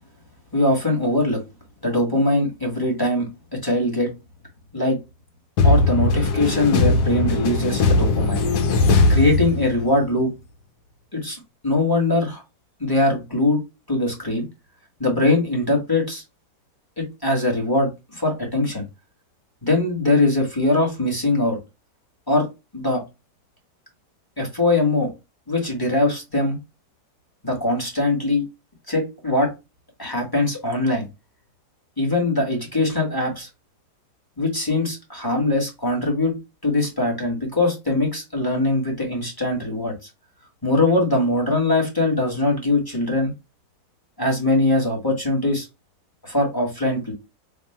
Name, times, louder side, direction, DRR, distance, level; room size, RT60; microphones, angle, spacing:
voice 1, 0.5-1.4 1.8-3.3 3.6-4.1 4.7-5.0 5.6-8.4 9.1-10.3 11.1-11.4 11.6-12.4 12.8-13.6 13.9-14.4 15.0-16.2 17.0-18.8 19.6-21.6 22.3-22.5 22.7-23.0 24.4-25.1 25.5-26.6 27.4-28.4 28.9-29.5 30.0-31.1 32.0-33.5 34.4-36.3 36.6-39.9 40.6-43.3 44.2-45.7 46.2-47.1, left 2 dB, 15° left, -1 dB, 1.2 m, -21 dB
sound 1, 5.6-10.0, left 3 dB, 70° left, 1.2 m, -19 dB
3.6 x 2.5 x 4.2 m, 0.24 s
omnidirectional pair, 1.8 m